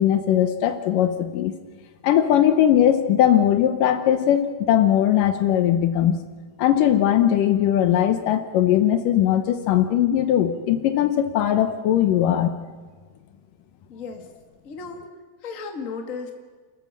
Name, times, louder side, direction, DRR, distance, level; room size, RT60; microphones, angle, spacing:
voice 1, 0.0-1.5 2.0-6.2 6.6-12.5, left 10 dB, 70° left, 9 dB, 2.1 m, -19 dB
voice 2, 13.9-14.3 14.6-15.1 15.4-16.3, left 4 dB, 35° left, 5 dB, 1.3 m, -34 dB
29.5 x 13.5 x 7.5 m, 1.5 s
omnidirectional pair, 4.8 m